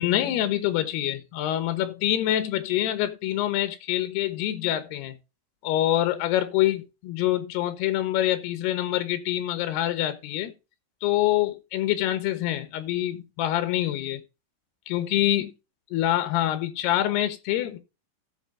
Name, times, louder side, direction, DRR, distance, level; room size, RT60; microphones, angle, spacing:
voice 1, 0.0-5.2 5.6-10.5 11.0-14.2 14.9-15.5 15.9-17.8, left 13 dB, 75° left, 3.0 m, -25 dB
15.0 x 5.4 x 3.8 m
omnidirectional pair, 4.9 m